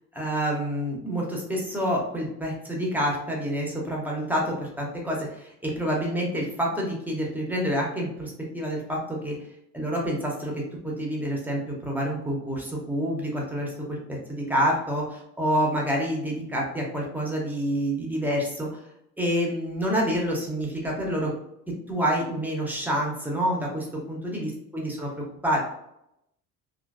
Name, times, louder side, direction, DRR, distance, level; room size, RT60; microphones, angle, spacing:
voice 1, 0.1-9.4 9.7-18.8 19.2-21.3 21.9-25.6, equal, 5° right, -2 dB, 0.8 m, -28 dB
3.0 x 2.5 x 2.4 m, 0.80 s
figure-of-eight pair, 55°, 48 cm